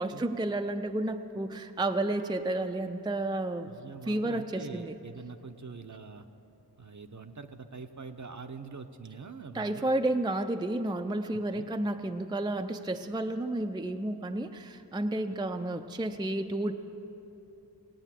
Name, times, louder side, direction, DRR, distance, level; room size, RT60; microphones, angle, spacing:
voice 1, 0.0-3.7 4.1-5.0 9.5-16.7, right 1 dB, 10° right, 6 dB, 0.5 m, -31 dB
voice 2, 3.7-6.3 6.8-9.9 11.3-11.7, right 4 dB, 45° right, 7 dB, 0.7 m, -44 dB
18.0 x 9.0 x 7.4 m, 2.8 s
wide cardioid pair, 55°, 41 cm